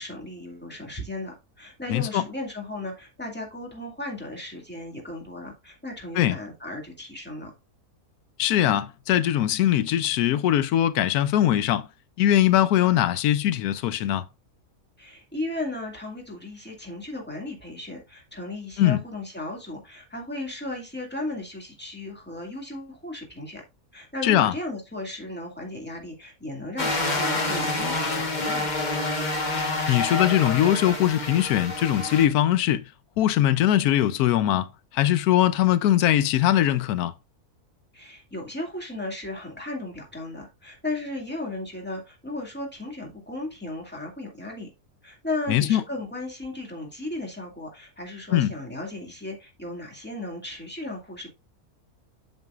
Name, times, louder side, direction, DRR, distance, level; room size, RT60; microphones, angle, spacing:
voice 1, 0.0-7.5 15.0-23.6 23.9-28.8 37.9-44.7 45.0-51.3, left 2 dB, 5° left, 2.1 m, -35 dB
voice 2, 1.9-2.2 6.2-6.4 8.4-11.9 12.2-14.2 18.8-19.0 24.2-24.5 29.9-32.8 33.2-34.7 34.9-37.1 45.5-45.8 48.3-48.5, left 12 dB, 90° left, 1.1 m, -21 dB
sound 1, 26.8-32.3, left 2 dB, 30° left, 1.3 m, -27 dB
7.9 x 7.3 x 2.4 m
omnidirectional pair, 1.5 m